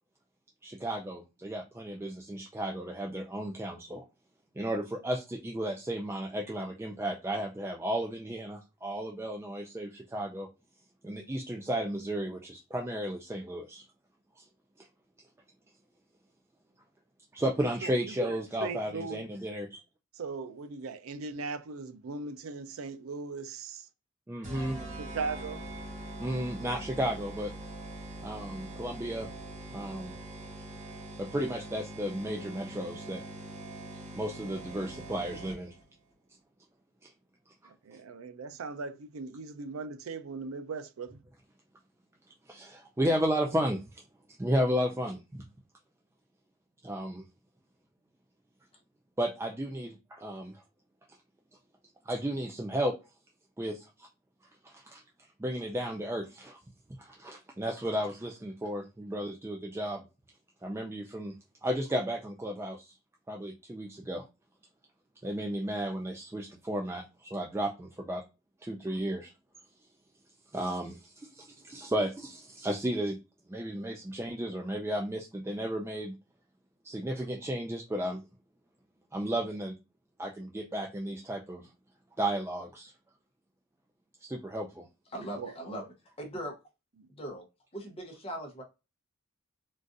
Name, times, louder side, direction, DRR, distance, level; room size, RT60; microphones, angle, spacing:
voice 1, 0.6-4.0 4.6-10.5 11.0-13.8 14.4-14.5 17.3-19.8 24.3-24.8 26.2-27.5 28.2-29.3 29.7-30.1 31.2-33.2 34.2-35.7 37.0-37.1 42.5-43.8 44.4-45.4 46.8-47.2 49.2-50.6 52.1-52.9 53.6-54.1 54.6-55.0 55.4-56.6 57.0-60.0 60.6-61.3 61.6-63.0 63.3-64.2 65.2-68.2 68.6-69.3 70.5-73.2 73.5-76.1 76.8-78.2 79.1-79.8 80.2-81.7 82.2-82.9 84.2-84.9, equal, 10° right, 0.3 m, -33 dB
voice 2, 17.8-19.3 20.1-23.9 24.7-25.7 37.8-41.2 85.4-85.5, right 4 dB, 90° right, 0.5 m, -39 dB
sound 1, 24.4-35.8, right 1 dB, 35° right, 1.1 m, -43 dB
voice 3, 85.1-85.8 86.2-86.6 87.1-87.4 87.7-88.6, right 1 dB, 30° left, 0.8 m, -39 dB
3.8 x 2.5 x 2.4 m
head